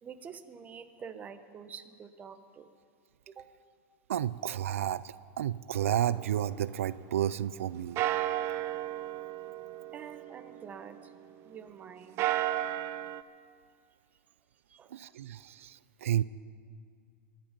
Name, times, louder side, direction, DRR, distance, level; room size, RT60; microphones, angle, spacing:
voice 1, 0.0-2.7 3.3-3.5 9.9-11.1 11.4-12.2 14.7-14.9, right 7 dB, 20° right, 8 dB, 1.1 m, -47 dB
voice 2, 4.1-8.0 14.9-16.2, right 11 dB, 90° right, 17 dB, 0.4 m, -31 dB
sound 1, 5.8-7.6 8.0-11.5 12.0-13.2, right 13 dB, 40° right, 0.6 m, -35 dB
23.5 x 10.5 x 5.2 m, 2.2 s
supercardioid pair, 130°, 7 cm